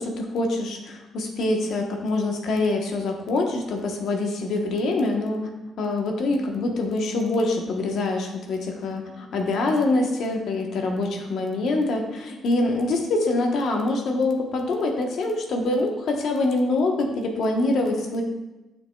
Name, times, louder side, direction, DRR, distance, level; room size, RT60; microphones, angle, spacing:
voice 1, 0.0-5.5 5.8-18.2, left 2 dB, 70° left, 2 dB, 1.1 m, -25 dB
9.5 x 5.8 x 2.3 m, 1.0 s
cardioid pair, 90°, 0 cm